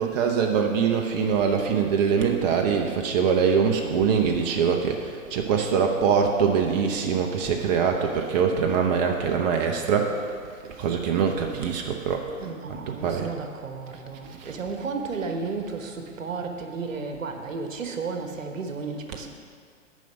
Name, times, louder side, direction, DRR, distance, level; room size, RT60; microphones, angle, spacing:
voice 1, 0.0-10.2 10.8-12.2 13.0-13.3 14.4-14.5, right 6 dB, 30° right, 2 dB, 0.7 m, -23 dB
voice 2, 12.4-19.3, right 4 dB, 70° right, 5 dB, 1.3 m, -33 dB
9.1 x 5.3 x 6.9 m, 2.2 s
figure-of-eight pair, 120°, 41 cm